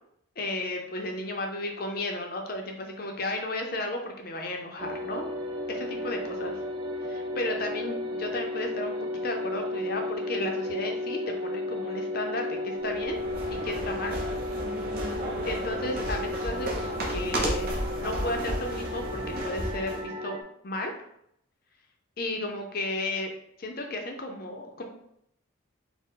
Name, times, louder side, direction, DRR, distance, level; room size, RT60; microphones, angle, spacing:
voice 1, 0.4-5.3 5.7-6.6 7.0-8.9 9.2-13.2 13.5-14.2 15.4-17.7 18.0-20.4 20.6-20.9 22.2-23.3 23.6-24.8, left 1 dB, 45° left, 3 dB, 0.6 m, -33 dB
sound 1, 4.8-20.4, left 1 dB, 20° right, 0.3 m, -34 dB
sound 2, 12.9-20.0, right 1 dB, 45° right, 0.8 m, -33 dB
4.2 x 2.1 x 3.8 m, 0.74 s
head